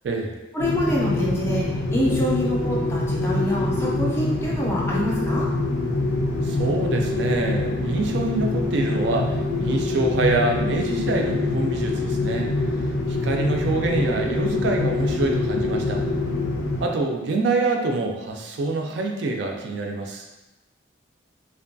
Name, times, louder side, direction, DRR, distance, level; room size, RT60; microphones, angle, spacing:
voice 1, 0.5-5.5, equal, 15° left, -4 dB, 0.4 m, -26 dB
sound 1, 0.6-16.8, left 2 dB, 70° left, 0.5 m, -25 dB
voice 2, 6.4-12.5 12.8-16.0 16.8-20.3, right 3 dB, 65° right, 2 dB, 0.3 m, -26 dB
2.6 x 2.2 x 2.5 m, 1.0 s
head